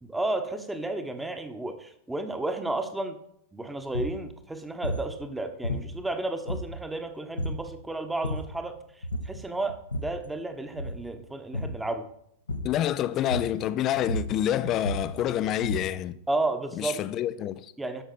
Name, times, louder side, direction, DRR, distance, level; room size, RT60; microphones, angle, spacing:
voice 1, 0.0-3.2 3.5-12.1 16.3-17.0 17.8-18.0, right 2 dB, 5° right, 1.2 m, -32 dB
sound 1, 3.9-4.2 4.8-5.1 5.6-6.1 6.5-7.0 7.4-7.7 8.1-8.6 9.0-9.4 9.7-10.2 10.7-11.1 11.5-11.8 12.5-12.8 13.3-13.7 13.9-16.0, left 1 dB, 80° left, 1.1 m, -32 dB
voice 2, 12.6-16.2 16.8-17.7, left 11 dB, 35° left, 0.6 m, -27 dB
12.5 x 6.1 x 4.2 m
figure-of-eight pair, 95°, 0 cm